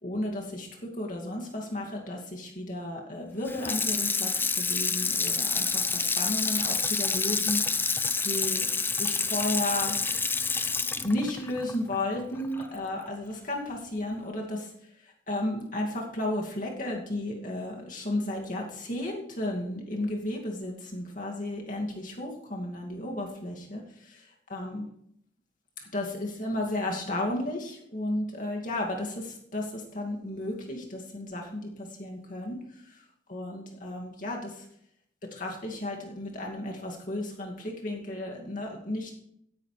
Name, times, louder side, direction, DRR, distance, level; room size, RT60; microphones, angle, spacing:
voice 1, 0.0-8.7 9.0-10.0 11.0-14.7 15.3-24.9 25.9-32.6 32.9-33.0 33.3-34.7 35.3-39.1, left 1 dB, 45° left, 0 dB, 2.4 m, -33 dB
Water tap faucet / Sink (filling or washing), 3.4-12.7 13.1-13.2, left 4 dB, 10° left, 0.5 m, -28 dB
16.0 x 11.0 x 3.4 m, 0.74 s
head